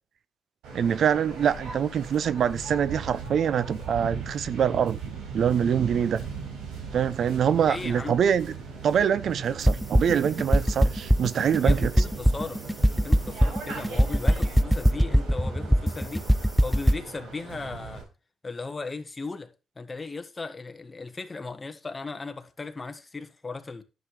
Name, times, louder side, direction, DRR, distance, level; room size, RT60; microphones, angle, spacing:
Waves surf, 0.6-18.0, right 5 dB, 90° right, 4.5 m, -39 dB
voice 1, 0.7-5.0 5.3-6.2 6.9-8.5 8.8-11.9, right 8 dB, 60° right, 0.5 m, -24 dB
voice 2, 7.5-8.2 11.6-12.6 13.0-16.2 16.6-18.0 18.4-23.8, left 3 dB, 25° left, 1.3 m, -37 dB
sound 1, 9.7-17.0, equal, ahead, 0.4 m, -20 dB
11.0 x 7.7 x 3.2 m
cardioid pair, 90°, 0 cm